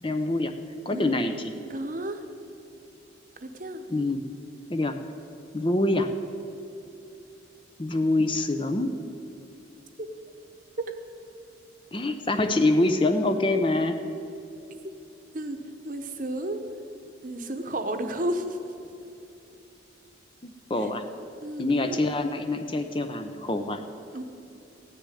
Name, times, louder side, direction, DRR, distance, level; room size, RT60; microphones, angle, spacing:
voice 1, 0.0-0.5 0.9-1.5 3.9-4.2 4.7-5.0 5.5-6.1 7.8-8.9 11.9-14.0 20.4-21.0 21.6-23.8, left 2 dB, 25° left, 7 dB, 0.6 m, -25 dB
voice 2, 1.7-2.2 3.4-3.8 15.3-15.6 15.8-16.6 17.2-18.6 20.8-20.9 21.4-22.1 24.1-24.2, right 1 dB, 45° right, 7 dB, 1.0 m, -32 dB
15.0 x 6.6 x 9.8 m, 2.8 s
head